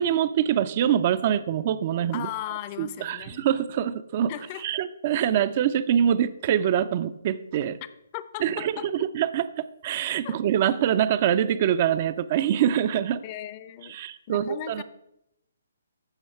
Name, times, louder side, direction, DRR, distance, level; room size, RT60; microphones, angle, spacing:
voice 1, 0.0-2.3 2.8-4.3 4.6-7.8 8.4-13.2 13.9-14.8, right 10 dB, 40° right, 14 dB, 0.5 m, -24 dB
voice 2, 2.1-3.4 4.3-4.6 8.1-8.9 10.2-10.4 13.2-14.0 14.3-14.8, left 13 dB, 30° left, 14 dB, 0.6 m, -37 dB
14.0 x 5.6 x 4.3 m, 0.85 s
hypercardioid pair, 145°, 0 cm